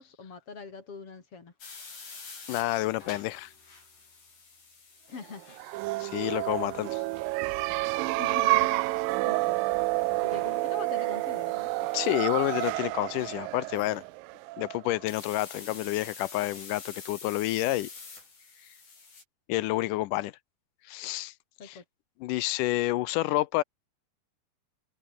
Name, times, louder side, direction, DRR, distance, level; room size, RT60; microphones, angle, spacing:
voice 1, 0.0-1.5 5.1-5.5 8.2-9.6 10.1-11.7 21.6-21.8, left 5 dB, 40° left, 3.8 m, -43 dB
sound 1, 1.6-12.7 15.1-19.2, left 4 dB, 60° left, 8.3 m, -49 dB
voice 2, 2.5-3.5 6.0-7.0 11.9-14.0 14.6-17.9 19.5-20.3 20.9-21.3 21.6-21.8 22.2-23.6, left 17 dB, 80° left, 2.1 m, -29 dB
sound 2, 5.5-15.0, right 20 dB, 85° right, 2.3 m, -29 dB
omnidirectional pair, 4.0 m